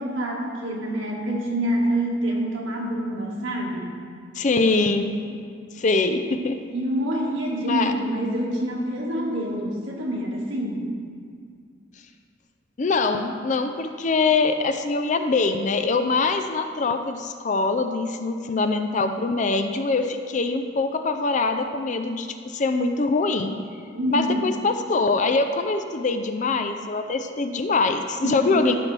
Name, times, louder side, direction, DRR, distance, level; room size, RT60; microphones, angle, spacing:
voice 1, 0.0-4.0 5.2-5.4 6.7-10.9 23.9-24.4 28.2-28.8, right 1 dB, 75° right, -2 dB, 1.7 m, -27 dB
voice 2, 4.3-5.2 5.8-6.6 7.6-7.9 12.8-23.6 24.1-28.8, left 3 dB, 40° left, 7 dB, 0.4 m, -23 dB
14.0 x 5.9 x 3.3 m, 2.2 s
head